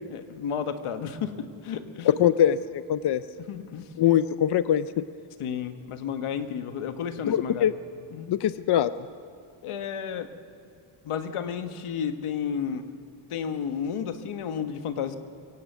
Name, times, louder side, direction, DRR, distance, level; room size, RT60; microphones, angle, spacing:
voice 1, 0.1-2.2 3.5-3.9 5.4-7.7 8.1-8.3 9.6-10.3 11.0-12.8 13.3-15.2, left 7 dB, 85° left, 9 dB, 1.5 m, -32 dB
voice 2, 2.1-3.2 4.0-5.1 7.3-7.7 8.3-8.9, left 10 dB, 55° left, 14 dB, 0.6 m, -22 dB
24.0 x 16.5 x 8.0 m, 2.5 s
wide cardioid pair, 135°, 49 cm